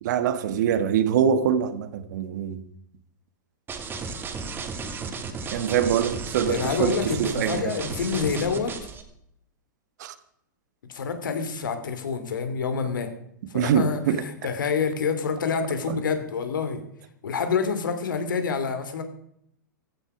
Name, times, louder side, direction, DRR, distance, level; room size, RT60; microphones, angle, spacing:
voice 1, 0.0-2.6 5.5-7.7 10.0-10.1 13.5-14.2 15.9-16.0, right 8 dB, 60° right, 1.7 m, -24 dB
sound 1, 3.7-9.0, right 5 dB, 20° right, 2.4 m, -34 dB
voice 2, 6.4-8.8 10.9-13.1 13.5-16.8 17.2-19.0, left 5 dB, 80° left, 2.9 m, -27 dB
15.5 x 14.0 x 5.0 m
hypercardioid pair, 120°, 11 cm